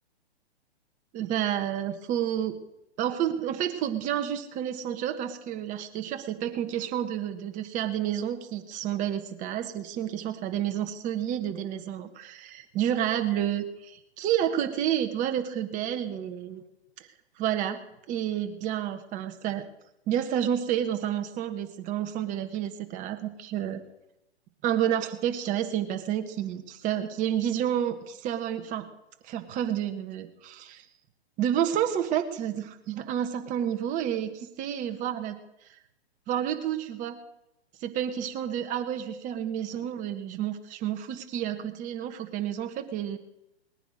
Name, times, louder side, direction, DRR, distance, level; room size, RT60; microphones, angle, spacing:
voice 1, 1.1-2.6 3.0-16.6 17.4-17.8 18.1-19.6 20.1-23.8 24.6-28.9 29.2-30.8 31.4-35.3 36.3-37.2 37.8-43.2, right 10 dB, 25° right, 6 dB, 1.3 m, -30 dB
20.0 x 9.9 x 6.5 m, 0.88 s
hypercardioid pair, 140°, 33 cm